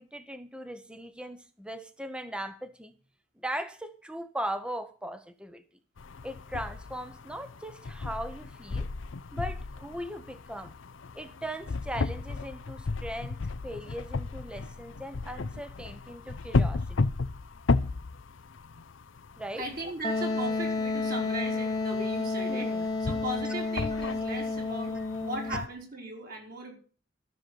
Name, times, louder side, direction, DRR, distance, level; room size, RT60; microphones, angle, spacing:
voice 1, 0.0-2.9 3.4-5.6 6.2-8.9 9.3-10.7 11.1-16.8 19.4-19.6 22.5-22.9 23.4-23.5 25.5-25.6, equal, 5° right, 0.9 m, -39 dB
sound 1, 6.0-25.7, left 3 dB, 70° left, 0.6 m, -34 dB
voice 2, 19.5-26.7, right 2 dB, 50° right, 4.6 m, -38 dB
Wind instrument woodwind instrument, 20.0-25.6, left 3 dB, 20° left, 1.1 m, -31 dB
13.5 x 7.0 x 7.7 m
head